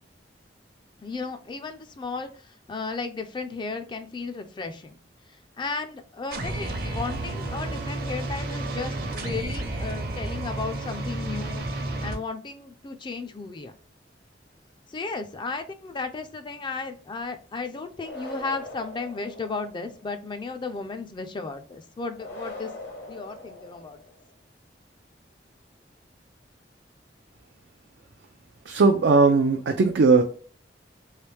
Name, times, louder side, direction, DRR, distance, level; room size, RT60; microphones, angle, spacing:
voice 1, 1.0-5.0 5.3-11.6 12.0-13.7 14.9-22.7 23.1-24.0, left 4 dB, 25° left, 8 dB, 0.4 m, -34 dB
sound 1, 6.3-12.1, right 2 dB, 60° right, 0.8 m, -31 dB
sound 2, 18.0-20.0 22.1-24.2, left 1 dB, 75° left, 1.2 m, -41 dB
voice 2, 28.7-30.2, right 4 dB, 80° right, 5 dB, 0.4 m, -18 dB
3.2 x 3.0 x 3.2 m, 0.41 s
head